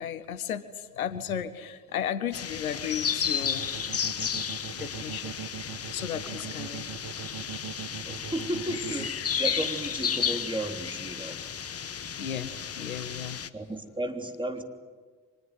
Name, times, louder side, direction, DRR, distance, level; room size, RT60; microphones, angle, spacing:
voice 1, 0.0-3.7 4.7-5.4 5.9-7.2 12.2-13.4, left 9 dB, 85° left, 15 dB, 0.8 m, -34 dB
sound 1, 2.3-13.5, left 7 dB, 35° left, 1.3 m, -33 dB
sound 2, 3.6-9.1, right 10 dB, 55° right, 1.1 m, -40 dB
voice 2, 8.1-11.4 13.5-14.6, right 1 dB, 10° right, 5 dB, 3.3 m, -34 dB
25.0 x 20.5 x 9.6 m, 1.5 s
figure-of-eight pair, 45°, 41 cm